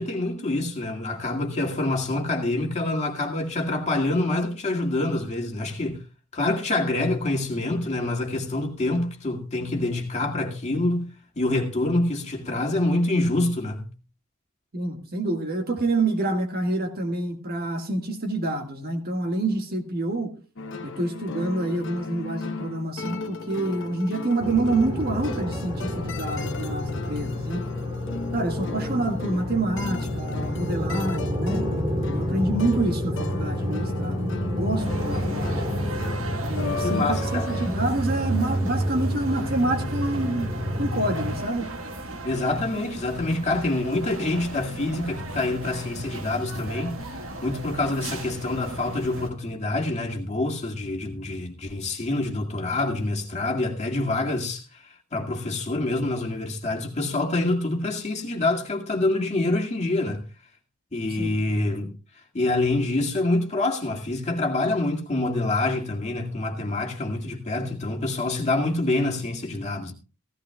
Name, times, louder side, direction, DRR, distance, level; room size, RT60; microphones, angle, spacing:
voice 1, 0.0-6.0 6.3-11.1 11.4-13.9 35.1-35.2 36.8-37.5 42.2-47.0 47.4-60.2 60.9-61.9 62.3-69.9, left 2 dB, 30° left, 2.1 m, -26 dB
voice 2, 14.7-20.3 20.8-27.6 28.3-31.6 32.1-35.9 36.4-40.5 40.8-41.7 61.2-61.3, right 2 dB, 45° right, 1.8 m, -27 dB
sound 1, 20.6-37.7, left 3 dB, 60° left, 1.0 m, -36 dB
sound 2, 24.4-41.4, equal, 25° right, 2.8 m, -29 dB
sound 3, 34.8-49.3, right 1 dB, 65° right, 1.8 m, -36 dB
16.0 x 15.5 x 2.3 m
head